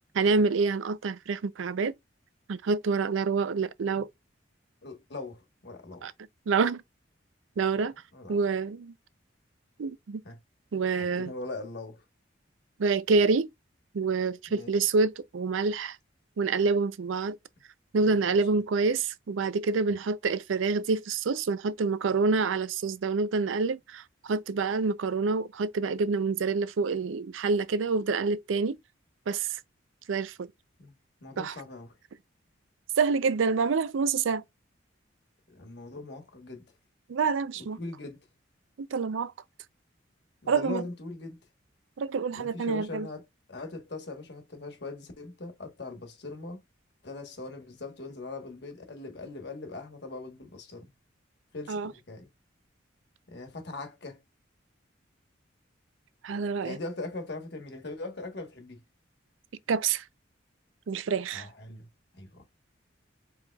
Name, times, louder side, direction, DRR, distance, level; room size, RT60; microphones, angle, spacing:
voice 1, 0.1-1.9 2.5-4.1 6.0-6.1 6.5-6.8 7.6-7.9 8.3-8.9 9.8-10.2 10.7-11.3 12.8-13.5 13.9-16.0 16.4-17.4 17.9-28.8 29.3-29.6 30.1-30.5 31.4-31.5 33.0-34.4 37.1-37.8 38.8-39.3 40.5-40.8 42.0-43.1 51.7-51.9 56.2-56.8 59.7-60.0 60.9-61.5, right 4 dB, 90° right, 0.4 m, -27 dB
voice 2, 4.8-6.0 7.7-7.8 8.1-8.4 10.2-10.4 10.9-12.0 14.5-14.8 18.0-18.4 21.7-21.8 22.1-22.2 30.8-30.9 31.2-32.0 35.5-36.6 37.8-38.2 40.4-41.4 42.3-46.6 47.0-50.9 51.5-52.3 53.3-54.2 56.6-58.8 61.3-61.9 62.2-62.4, left 3 dB, 60° left, 1.2 m, -41 dB
4.8 x 4.1 x 2.3 m
head